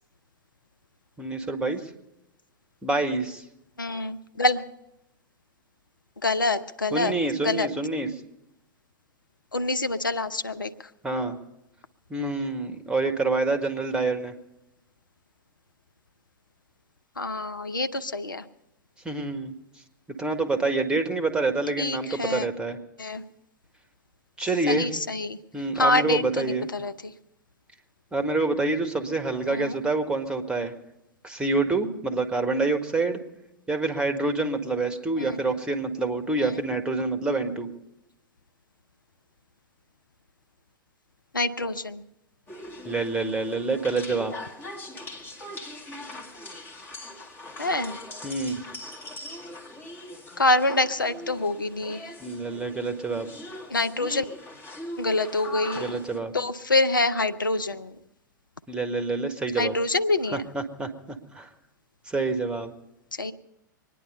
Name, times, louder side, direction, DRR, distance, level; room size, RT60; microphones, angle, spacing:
voice 1, 1.2-1.9 2.8-3.4 6.9-8.1 11.0-11.4 12.1-14.3 19.0-19.5 20.1-22.8 24.4-24.9 25.5-26.7 28.1-30.7 31.2-33.2 33.7-37.7 42.8-44.3 48.2-48.6 52.2-53.3 55.8-56.3 58.7-59.8 60.5-61.5 62.1-62.7, right 3 dB, 10° right, 7 dB, 1.4 m, -27 dB
voice 2, 3.8-4.6 6.2-7.1 7.4-7.7 9.5-10.7 17.2-18.5 21.8-22.5 23.0-23.2 24.7-25.4 25.7-27.1 29.5-29.8 35.2-35.4 36.4-36.6 41.3-42.0 47.6-48.0 50.4-52.1 53.7-54.2 55.0-55.9 56.3-58.0 59.6-60.5 63.2-63.3, left 2 dB, 85° left, 11 dB, 0.6 m, -26 dB
Korobeiniki Tetris song rap, 42.5-56.2, left 1 dB, 20° left, 1.9 m, -41 dB
24.0 x 10.0 x 5.4 m, 0.87 s
figure-of-eight pair, 95°, 11 cm